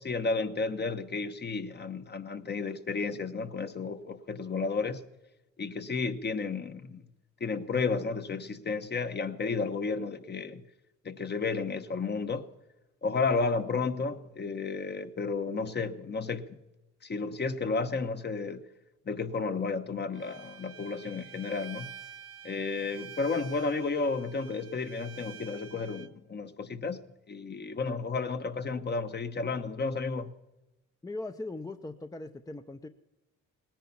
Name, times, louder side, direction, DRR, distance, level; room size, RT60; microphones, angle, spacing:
voice 1, 0.0-5.0 5.6-7.0 7.4-10.6 11.0-12.5 13.0-16.6 17.0-18.6 19.0-21.9 22.4-27.0 27.3-30.3, left 4 dB, 35° left, 1.1 m, -32 dB
Bowed string instrument, 20.1-26.1, right 7 dB, 50° right, 0.8 m, -48 dB
voice 2, 31.0-32.9, left 2 dB, 10° left, 0.6 m, -39 dB
18.5 x 10.0 x 7.1 m
cardioid pair, 90°, 30 cm